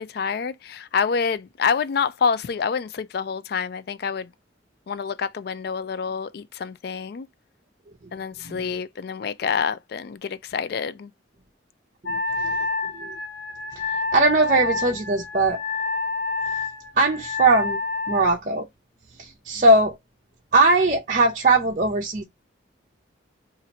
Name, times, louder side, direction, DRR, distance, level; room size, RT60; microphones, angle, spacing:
voice 1, 0.0-4.3 4.9-7.3 8.1-11.1, left 6 dB, 50° left, 0.3 m, -27 dB
Wind instrument woodwind instrument, 12.0-18.4, left 3 dB, 70° left, 0.8 m, -28 dB
voice 2, 12.1-12.5 13.0-13.1 14.1-15.6 17.0-17.8 18.1-18.7 19.2-20.0 20.5-22.2, right 2 dB, 40° right, 0.6 m, -20 dB
2.8 x 2.5 x 4.0 m
head